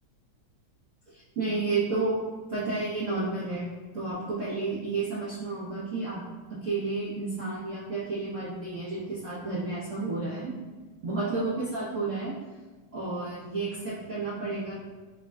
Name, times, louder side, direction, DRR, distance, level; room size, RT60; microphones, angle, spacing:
voice 1, 1.1-2.2 2.5-3.7 3.9-6.2 6.5-10.5 11.0-12.4 12.9-14.8, right 3 dB, 85° right, -9 dB, 0.6 m, -31 dB
3.7 x 2.1 x 3.4 m, 1.3 s
omnidirectional pair, 2.3 m